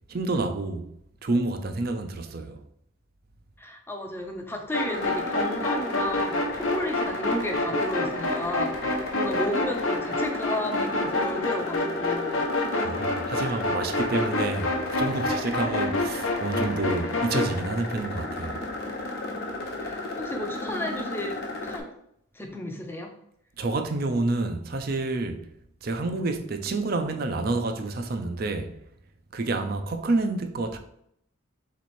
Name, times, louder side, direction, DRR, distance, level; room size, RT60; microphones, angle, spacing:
voice 1, 0.1-0.9 1.2-2.6 12.8-18.6 23.6-25.5 25.8-28.8 29.3-30.8, right 2 dB, 45° right, 0.5 m, -28 dB
voice 2, 3.6-13.0 13.4-13.9 19.8-21.4 21.6-21.9 22.3-23.1, left 1 dB, 10° left, 0.5 m, -33 dB
sound 1, 4.7-17.5, left 2 dB, 75° left, 0.9 m, -28 dB
sound 2, 4.9-21.8, left 2 dB, 50° left, 0.9 m, -35 dB
4.0 x 3.1 x 4.2 m
head